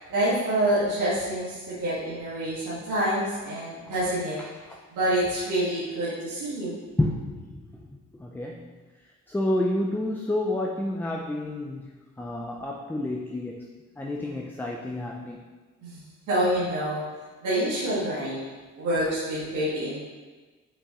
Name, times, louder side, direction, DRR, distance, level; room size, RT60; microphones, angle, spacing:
voice 1, 0.1-4.4 4.9-6.8 15.8-17.0 17.4-18.4 18.7-20.0, right 1 dB, 85° right, -9 dB, 2.0 m, -27 dB
voice 2, 7.0-7.8 8.2-8.7 9.3-11.9 12.2-13.7 14.0-15.4, left 1 dB, 5° left, 0 dB, 0.5 m, -29 dB
6.0 x 5.6 x 3.1 m, 1.3 s
cardioid pair, 90°, 30 cm